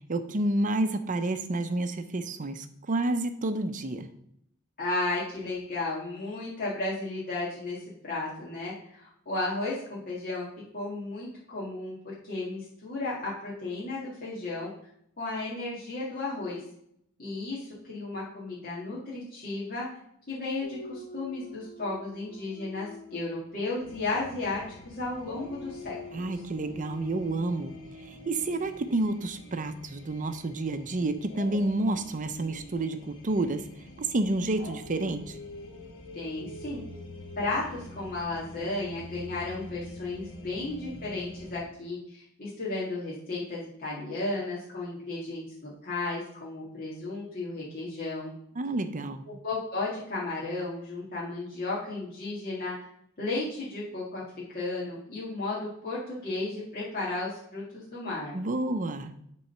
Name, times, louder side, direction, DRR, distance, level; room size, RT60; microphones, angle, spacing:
voice 1, 0.1-4.1 26.1-27.7 28.1-33.7 34.0-35.4 48.6-49.3 58.3-59.1, right 2 dB, 40° right, 9 dB, 0.6 m, -29 dB
voice 2, 4.8-7.8 8.0-10.5 10.7-14.7 15.2-16.6 17.2-19.9 20.3-26.3 36.1-36.8 37.4-48.3 49.3-52.7 53.2-54.2 54.5-58.3, left 2 dB, 45° left, -8 dB, 1.9 m, -34 dB
Dog, 20.6-24.8 25.2-30.2 31.3-38.2, left 2 dB, 80° left, 2.0 m, -47 dB
sound 1, 23.8-41.6, left 1 dB, 65° left, 1.1 m, -48 dB
7.4 x 3.9 x 5.5 m, 0.71 s
head